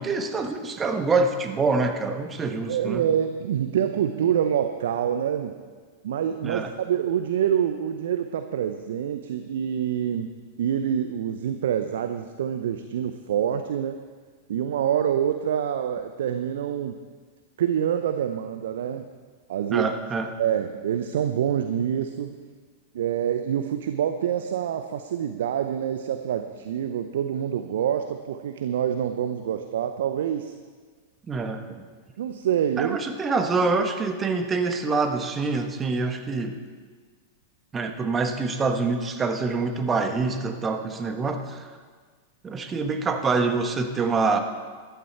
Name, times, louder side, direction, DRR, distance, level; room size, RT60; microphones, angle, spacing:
voice 1, 0.0-3.0 6.4-6.7 19.7-20.3 31.3-31.8 32.8-36.5 37.7-41.7 42.4-44.4, right 4 dB, 20° right, 6 dB, 1.2 m, -25 dB
voice 2, 2.7-5.5 6.0-10.3 10.6-14.0 14.5-17.0 17.6-19.1 19.5-19.9 20.4-22.3 22.9-30.5 32.2-33.0, right 9 dB, 65° right, 8 dB, 0.6 m, -26 dB
14.0 x 12.0 x 4.4 m, 1.5 s
hypercardioid pair, 100°, 0 cm